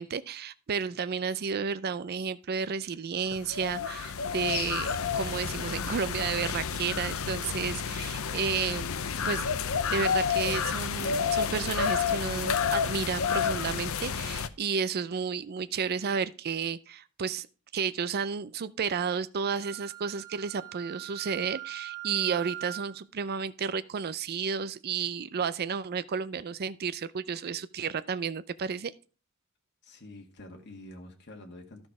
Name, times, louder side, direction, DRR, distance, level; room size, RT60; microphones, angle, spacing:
voice 1, 0.0-8.9 9.2-9.5 9.9-17.5 17.7-28.9, right 6 dB, 45° right, 0.4 m, -32 dB
sound 1, 3.3-14.5, left 6 dB, 70° left, 0.7 m, -30 dB
Wind instrument woodwind instrument, 19.6-23.0, right 15 dB, 20° right, 2.8 m, -41 dB
voice 2, 29.8-31.9, left 1 dB, 50° left, 1.8 m, -47 dB
12.0 x 6.2 x 4.8 m
head